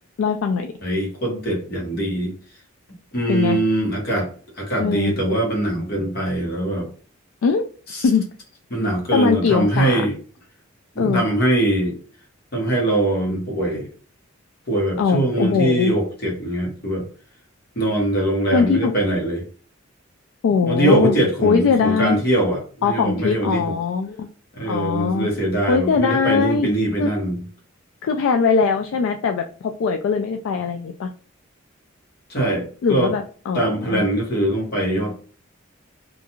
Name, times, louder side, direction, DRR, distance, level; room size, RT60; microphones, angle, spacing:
voice 1, 0.2-0.7 3.3-3.6 4.8-5.1 7.4-7.6 8.0-8.2 9.1-10.0 11.0-11.2 15.0-15.9 18.5-18.9 20.4-21.2 21.4-22.2 22.8-24.3 24.7-25.3 25.7-26.7 27.0-27.1 28.0-31.1 32.8-34.1, left 5 dB, 70° left, 0.3 m, -21 dB
voice 2, 0.8-2.3 3.1-4.3 4.6-6.9 7.9-8.1 8.7-10.1 10.9-12.0 12.5-13.9 14.7-17.1 17.7-19.4 20.7-23.7 24.5-27.4 32.3-33.1 33.5-35.1, right 1 dB, 50° left, 1.2 m, -22 dB
2.5 x 2.3 x 2.9 m
head